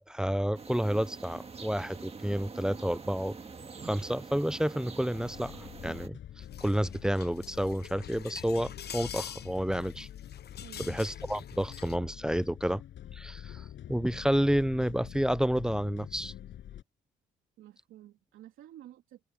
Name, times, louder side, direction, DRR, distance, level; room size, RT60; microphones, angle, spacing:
voice 1, 0.1-3.4 3.8-6.2 6.6-10.1 10.8-12.8 13.1-16.3, equal, 5° right, 0.5 m, -30 dB
sound 1, 0.5-6.1, right 4 dB, 30° right, 1.8 m, -45 dB
sound 2, 5.1-16.8, left 11 dB, 70° left, 6.0 m, -46 dB
sound 3, 6.4-12.0, left 9 dB, 55° left, 1.1 m, -46 dB
voice 2, 10.6-11.0 11.6-11.7 17.6-19.2, right 13 dB, 85° right, 3.3 m, -52 dB
open air
cardioid pair, 90°, 20 cm